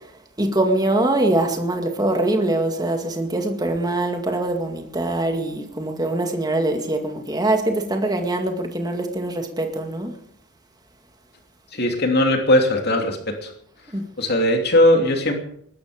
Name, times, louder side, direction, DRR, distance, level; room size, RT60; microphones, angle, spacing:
voice 1, 0.4-10.1 13.9-14.1, right 2 dB, 20° right, 2.1 m, -23 dB
voice 2, 11.7-13.5 14.2-15.3, left 1 dB, 45° left, 2.9 m, -19 dB
20.5 x 13.0 x 5.1 m
head